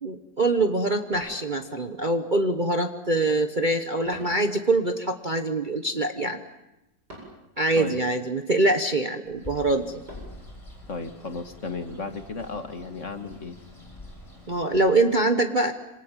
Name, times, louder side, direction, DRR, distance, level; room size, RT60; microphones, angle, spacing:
voice 1, 0.0-6.4 7.6-10.0 14.5-15.7, right 2 dB, 30° right, 6 dB, 1.1 m, -24 dB
sound 1, 1.1-2.0 4.1-4.6 7.1-7.5 10.1-10.5, equal, 60° right, 8.8 m, -44 dB
Bird, 9.3-15.2, left 1 dB, 15° left, 7.2 m, -46 dB
voice 2, 10.9-13.6, left 4 dB, 40° left, 7 dB, 2.0 m, -34 dB
27.0 x 26.0 x 7.4 m, 0.94 s
omnidirectional pair, 2.0 m